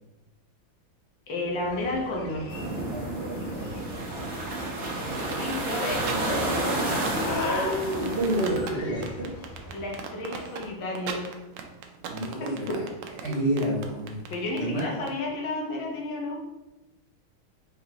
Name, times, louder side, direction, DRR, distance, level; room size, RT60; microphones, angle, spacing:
voice 1, 1.3-2.5 5.4-8.2 9.7-11.2 12.4-12.8 14.3-16.4, left 2 dB, 70° left, -1 dB, 1.7 m, -32 dB
sound 1, 1.4-10.1, left 2 dB, 85° left, 1.7 m, -40 dB
sound 2, 2.5-8.5, right 2 dB, 45° right, 1.2 m, -31 dB
voice 2, 2.9-3.9 7.1-9.4 12.1-12.9 13.2-14.2 14.6-14.9, right 1 dB, 65° right, -5 dB, 0.6 m, -29 dB
sound 3, 5.1-15.1, right 7 dB, 85° right, 1.4 m, -38 dB
4.7 x 3.6 x 2.9 m, 1.0 s
omnidirectional pair, 2.2 m